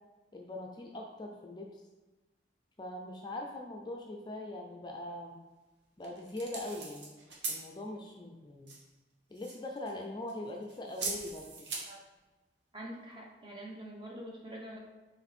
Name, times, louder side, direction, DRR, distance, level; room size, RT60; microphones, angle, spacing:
voice 1, 0.3-1.8 2.8-5.4 6.0-8.8 9.3-11.5, left 1 dB, 25° left, 1 dB, 0.4 m, -42 dB
sound 1, 6.0-7.6 8.7-8.8 9.3-10.0 10.3-11.9, right 4 dB, 70° right, 1.1 m, -40 dB
voice 2, 12.7-14.8, right 1 dB, 25° right, -2 dB, 1.0 m, -45 dB
7.0 x 3.2 x 4.2 m, 1.2 s
head